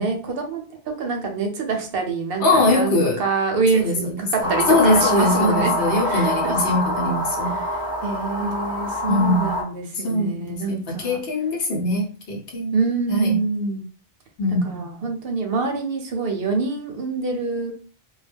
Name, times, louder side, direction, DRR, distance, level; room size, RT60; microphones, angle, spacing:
voice 1, 0.0-5.7 6.0-6.7 7.6-11.2 12.7-13.8 14.6-17.7, right 4 dB, 65° right, 0.8 m, -26 dB
voice 2, 2.4-3.2 3.7-4.1 4.4-7.6 9.1-9.6 10.0-12.8 13.1-13.4 14.4-14.8, left 2 dB, 70° left, 1.0 m, -22 dB
sound 1, 4.4-9.6, left 1 dB, 5° right, 0.5 m, -25 dB
2.2 x 2.2 x 3.3 m
omnidirectional pair, 1.1 m